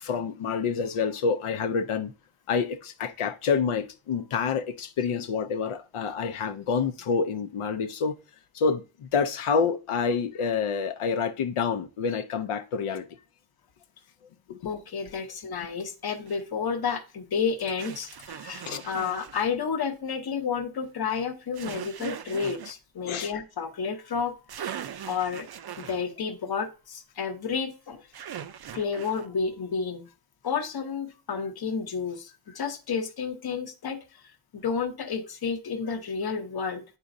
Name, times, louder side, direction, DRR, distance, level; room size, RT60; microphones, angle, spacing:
voice 1, 0.0-2.1 2.5-8.2 8.5-13.1 14.5-14.6 18.6-18.8 23.0-23.3, left 5 dB, 90° left, 0.6 m, -28 dB
voice 2, 14.6-24.3 25.1-25.5 25.8-28.0 28.7-30.1 30.4-34.2 34.5-36.8, left 6 dB, 50° left, 0.8 m, -31 dB
sound 1, 16.3-16.4 17.8-19.5 21.5-22.7 24.2-24.3 24.5-26.0 28.1-29.3, right 9 dB, 50° right, 0.5 m, -40 dB
9.8 x 4.1 x 2.5 m
wide cardioid pair, 160°, 49 cm